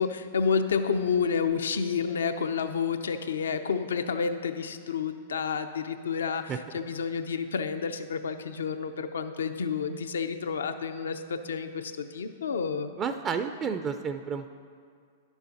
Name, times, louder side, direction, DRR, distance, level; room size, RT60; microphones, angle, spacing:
voice 1, 0.0-12.9, left 6 dB, 80° left, 9 dB, 0.5 m, -30 dB
voice 2, 13.0-14.5, right 6 dB, 30° right, 8 dB, 0.4 m, -31 dB
10.5 x 7.2 x 4.1 m, 2.2 s
hypercardioid pair, 120°, 0 cm